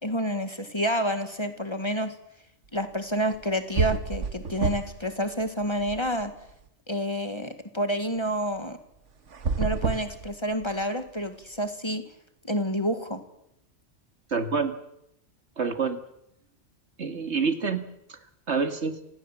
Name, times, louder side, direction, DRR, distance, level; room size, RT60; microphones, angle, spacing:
voice 1, 0.0-2.1 2.7-6.3 6.9-8.8 9.6-12.0 12.4-13.2, equal, 25° left, 8 dB, 1.8 m, -29 dB
sound 1, 3.3-3.4 3.7-5.1 5.4-6.5 9.3-10.8, right 4 dB, 90° right, 1.7 m, -29 dB
voice 2, 14.3-14.8 15.6-16.0 17.0-17.8 18.1-18.2 18.5-18.9, right 5 dB, 70° right, 8 dB, 2.3 m, -27 dB
28.5 x 17.5 x 7.5 m, 0.79 s
omnidirectional pair, 1.2 m